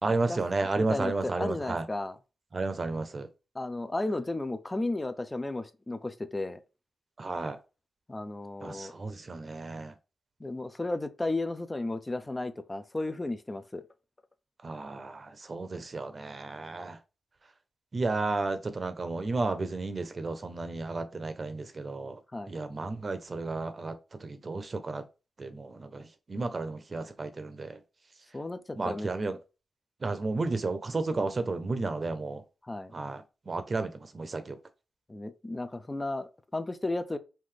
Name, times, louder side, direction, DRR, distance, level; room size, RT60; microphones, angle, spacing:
voice 1, 0.0-1.8 2.5-3.3 7.2-7.6 8.6-9.9 14.6-17.0 17.9-22.2 22.5-23.9 24.2-25.0 25.4-27.8 28.8-29.4 30.0-32.4 32.9-34.6, right 3 dB, 40° right, 0.7 m, -32 dB
voice 2, 0.8-2.2 3.5-6.6 8.1-8.9 10.4-13.8 22.3-22.5 28.3-29.1 32.6-32.9 35.1-37.2, left 2 dB, 20° left, 0.5 m, -34 dB
5.7 x 2.6 x 3.3 m
wide cardioid pair, 95°, 0 cm